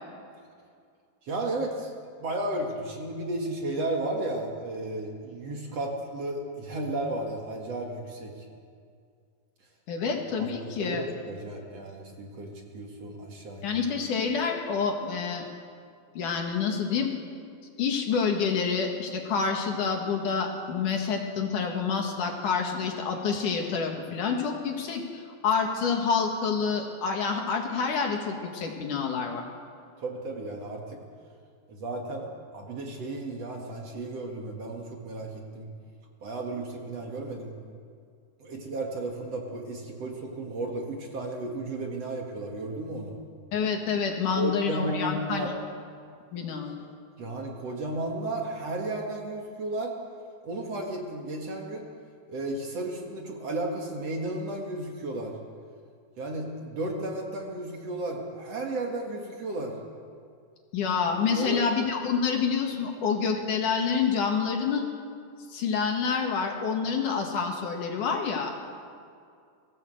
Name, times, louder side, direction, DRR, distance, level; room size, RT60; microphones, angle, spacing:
voice 1, 1.2-1.9 2.2-8.5 10.4-13.8 30.0-31.0 31.7-32.3 32.5-35.7 36.2-37.6 38.4-43.2 44.4-45.5 47.2-49.9 50.4-51.9 52.3-55.3 56.2-59.8 61.4-61.6, right 2 dB, 50° right, 1 dB, 2.7 m, -33 dB
voice 2, 9.9-11.0 13.6-15.5 16.1-17.1 17.8-29.4 43.5-45.5 46.3-46.9 60.7-64.9 65.5-68.5, left 5 dB, 65° left, 2 dB, 3.2 m, -28 dB
21.5 x 16.0 x 8.0 m, 2.3 s
omnidirectional pair, 4.2 m